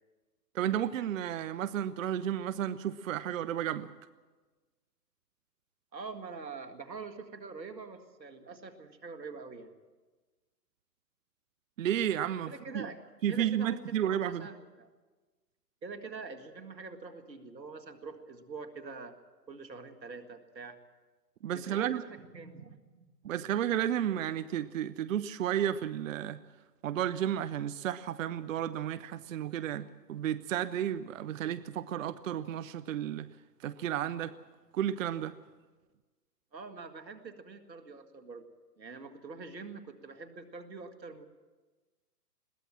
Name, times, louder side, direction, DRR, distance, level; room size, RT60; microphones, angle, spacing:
voice 1, 0.5-3.9 11.8-12.9 13.2-14.5 21.4-22.0 23.2-26.4 26.8-33.3 33.6-34.3 34.7-35.3, right 10 dB, 50° right, 15 dB, 0.7 m, -32 dB
voice 2, 5.9-9.7 12.4-14.9 15.8-19.2 19.5-20.8 21.5-23.1 36.5-38.5 38.8-41.3, right 4 dB, 85° right, 8 dB, 2.0 m, -45 dB
21.5 x 16.5 x 7.5 m, 1.3 s
hypercardioid pair, 130°, 50 cm